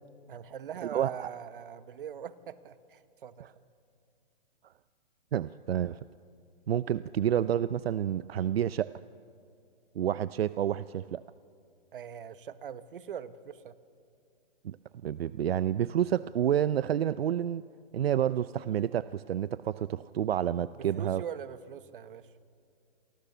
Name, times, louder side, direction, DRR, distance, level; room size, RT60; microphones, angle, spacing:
voice 1, 0.3-3.6 11.9-13.7 20.8-22.3, right 8 dB, 65° right, 13 dB, 1.3 m, -42 dB
voice 2, 0.9-1.3 5.3-6.0 6.7-8.9 9.9-11.2 14.6-14.8 15.0-17.6 17.9-21.2, right 10 dB, 85° right, 15 dB, 0.6 m, -29 dB
28.5 x 24.0 x 6.9 m, 2.4 s
hypercardioid pair, 170°, 29 cm